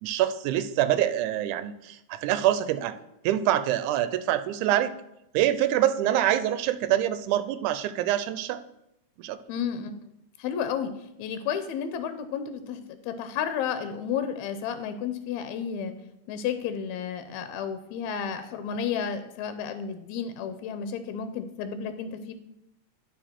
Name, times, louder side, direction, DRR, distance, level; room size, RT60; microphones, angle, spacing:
voice 1, 0.0-3.0 3.2-4.9 5.3-8.6 9.2-9.4, right 12 dB, 85° right, 12 dB, 2.0 m, -25 dB
voice 2, 9.5-9.9 10.4-10.9 11.2-15.9 16.3-22.3, left 7 dB, 80° left, 10 dB, 1.9 m, -32 dB
11.0 x 4.6 x 4.4 m, 0.83 s
omnidirectional pair, 3.5 m